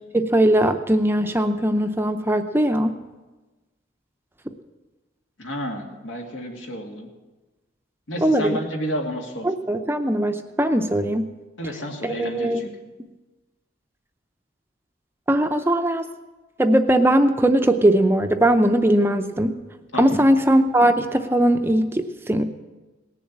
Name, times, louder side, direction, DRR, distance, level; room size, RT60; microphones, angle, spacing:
voice 1, 0.1-2.9 8.2-8.6 9.4-11.3 12.0-12.6 15.3-16.1 16.6-19.6 20.0-22.4, right 1 dB, 10° right, 7 dB, 0.6 m, -19 dB
voice 2, 5.4-7.1 8.1-9.5 11.6-12.7 19.9-20.3, equal, 80° left, 2 dB, 2.3 m, -31 dB
18.0 x 7.1 x 8.6 m, 1.2 s
head